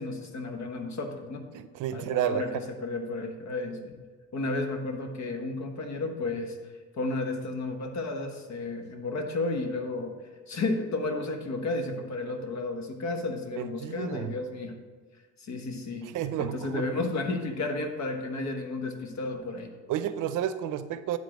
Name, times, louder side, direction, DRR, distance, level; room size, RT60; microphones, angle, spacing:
voice 1, 0.0-1.6 1.9-3.9 4.3-14.8 15.4-19.7, left 2 dB, 65° left, 5 dB, 1.2 m, -33 dB
voice 2, 1.5-2.4 13.6-14.3 16.1-16.9 19.9-21.2, right 11 dB, 80° right, 12 dB, 0.6 m, -31 dB
9.6 x 3.7 x 6.3 m, 1.4 s
cardioid pair, 90°, 30 cm